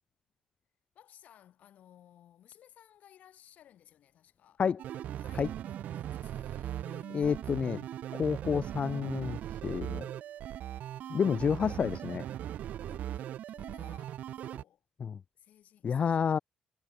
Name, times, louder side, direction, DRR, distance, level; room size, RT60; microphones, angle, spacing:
voice 1, 0.9-4.6 5.2-7.7 9.9-11.4 12.8-14.8 15.3-16.4, left 11 dB, 65° left, 5.9 m, -59 dB
sound 1, 4.8-14.6, right 11 dB, 65° right, 1.8 m, -39 dB
voice 2, 7.1-7.8 8.1-10.0 11.1-12.2 15.0-15.2 15.8-16.4, left 7 dB, 45° left, 0.6 m, -29 dB
hypercardioid pair, 55°, 3 cm